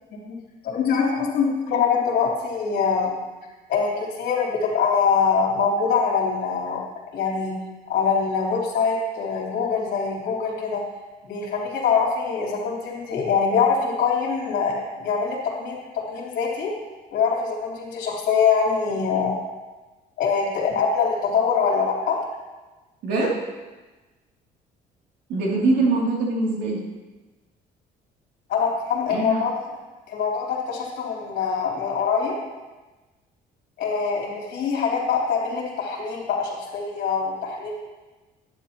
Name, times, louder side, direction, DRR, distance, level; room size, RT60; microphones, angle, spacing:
voice 1, 0.6-3.1 3.7-6.8 7.1-7.5 7.9-10.8 11.2-15.8 16.1-16.7 17.1-19.4 20.2-22.2 28.5-29.5 30.1-32.3 33.8-37.8, left 5 dB, 70° left, -4 dB, 3.7 m, -23 dB
voice 2, 23.0-23.4 25.3-26.8 29.1-29.4, right 2 dB, 80° right, -3 dB, 3.0 m, -23 dB
11.5 x 10.0 x 3.0 m, 1.2 s
cardioid pair, 110°, 17 cm